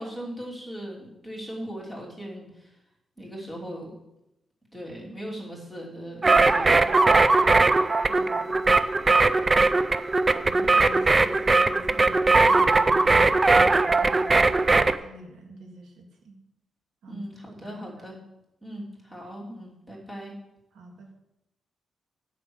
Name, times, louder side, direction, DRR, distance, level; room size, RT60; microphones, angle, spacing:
voice 1, 0.0-2.7 3.2-3.9 4.7-6.8 17.1-18.2 18.6-20.3, equal, ahead, -4 dB, 3.1 m, -38 dB
sound 1, 6.2-15.0, right 3 dB, 25° right, 0.4 m, -20 dB
voice 2, 8.1-8.9 10.3-14.5 15.0-16.4 17.0-17.3 17.6-18.1 20.7-21.1, right 2 dB, 85° right, 2 dB, 1.9 m, -46 dB
9.5 x 5.9 x 7.9 m, 0.88 s
wide cardioid pair, 140°, 0 cm